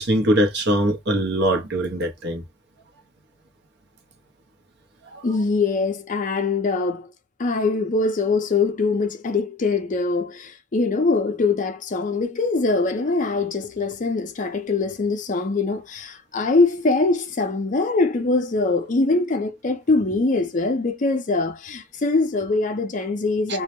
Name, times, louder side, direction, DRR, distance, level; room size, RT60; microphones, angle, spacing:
voice 1, 0.0-2.4 5.1-5.2 23.5-23.6, right 1 dB, 50° right, 0.7 m, -22 dB
voice 2, 5.2-7.1 7.4-23.6, left 3 dB, 35° left, 0.5 m, -23 dB
2.2 x 2.0 x 2.9 m
head